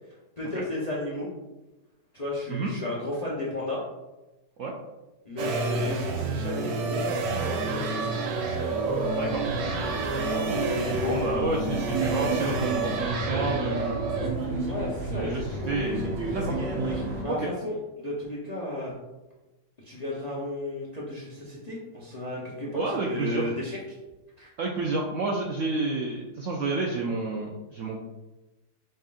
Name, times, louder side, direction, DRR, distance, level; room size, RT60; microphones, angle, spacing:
voice 1, 0.4-1.3 2.1-3.8 5.2-8.1 10.2-11.3 14.6-15.8 16.9-18.9 19.8-23.8 24.4-24.5, left 1 dB, 40° left, -5 dB, 0.5 m, -33 dB
sound 1, 5.4-14.3, right 3 dB, 90° right, 1.3 m, -29 dB
sound 2, 8.8-17.2, right 2 dB, 45° right, 0.9 m, -33 dB
voice 2, 9.1-9.5 11.0-14.0 15.1-16.6 17.3-17.5 22.7-23.5 24.6-28.0, right 3 dB, 70° right, -1 dB, 0.7 m, -30 dB
5.3 x 3.7 x 2.4 m, 1.0 s
omnidirectional pair, 1.8 m